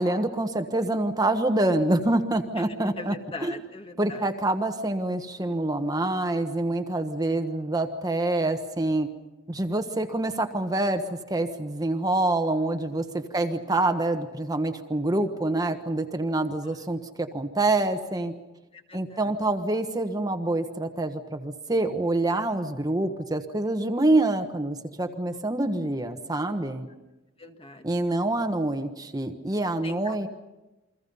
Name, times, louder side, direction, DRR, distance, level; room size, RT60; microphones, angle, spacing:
voice 1, 0.0-3.5 4.0-9.1 9.5-18.3 18.9-26.9 27.8-30.3, right 2 dB, 20° right, 6 dB, 1.3 m, -26 dB
voice 2, 3.0-4.3 13.4-13.6 16.6-16.8 18.7-19.3 25.4-25.8 27.4-27.8 29.8-30.3, left 3 dB, 30° left, 5 dB, 1.7 m, -42 dB
29.0 x 23.5 x 5.5 m, 1.1 s
head